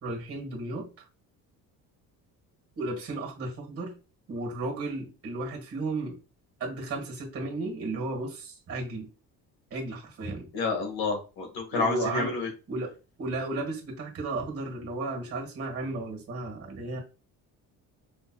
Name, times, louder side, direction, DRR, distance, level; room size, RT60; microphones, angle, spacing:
voice 1, 0.0-1.0 2.8-4.0 4.3-6.2 6.6-9.1 9.7-10.5 11.7-12.4 12.7-12.9 13.2-17.0, right 2 dB, 40° right, 1.4 m, -34 dB
voice 2, 10.5-12.5, left 4 dB, 80° left, 1.6 m, -29 dB
5.2 x 2.8 x 2.2 m
cardioid pair, 165°, 36 cm